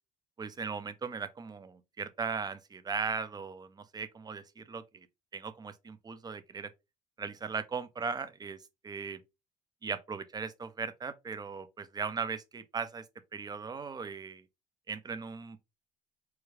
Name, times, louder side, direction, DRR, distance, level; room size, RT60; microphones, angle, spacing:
voice 1, 0.4-5.1 5.3-6.7 7.2-9.2 9.8-13.0 13.3-14.4 14.9-15.7, right 5 dB, 25° right, 0.5 m, -38 dB
4.6 x 2.3 x 3.1 m
cardioid pair, 110°, 17 cm